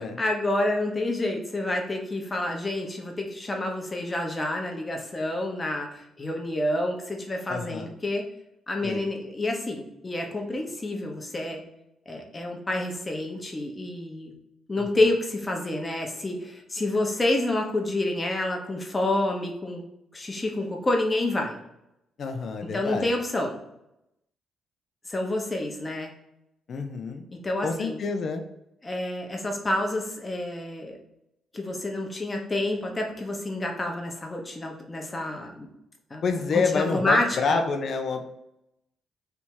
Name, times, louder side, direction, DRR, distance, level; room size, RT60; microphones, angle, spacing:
voice 1, 0.2-8.3 8.7-11.6 12.1-14.3 14.7-19.8 20.1-21.6 22.6-23.6 25.1-26.1 27.3-28.0 28.8-31.0 31.5-35.7 36.1-37.6, left 1 dB, 25° left, 2 dB, 1.0 m, -28 dB
voice 2, 7.5-7.9 8.8-9.1 22.2-23.1 26.7-27.2 27.6-28.4 36.2-38.2, left 4 dB, 55° left, 5 dB, 0.6 m, -27 dB
3.4 x 2.8 x 4.6 m, 0.84 s
cardioid pair, 90°, 0 cm